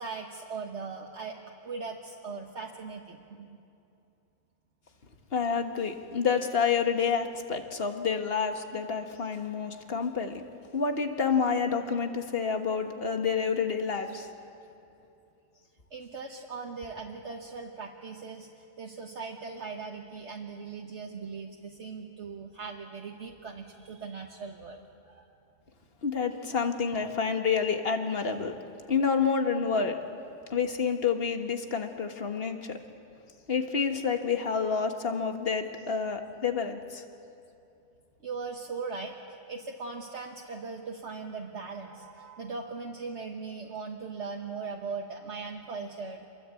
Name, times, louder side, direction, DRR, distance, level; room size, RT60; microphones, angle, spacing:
voice 1, 0.0-1.4 1.6-3.6 15.9-24.8 25.0-25.3 38.2-46.3, right 4 dB, 55° right, 0 dB, 1.7 m, -39 dB
voice 2, 5.3-10.4 10.7-14.3 26.0-28.6 28.9-30.0 30.5-32.8 33.5-37.0, left 6 dB, 45° left, 5 dB, 1.7 m, -28 dB
27.5 x 23.0 x 8.4 m, 2.7 s
omnidirectional pair, 1.5 m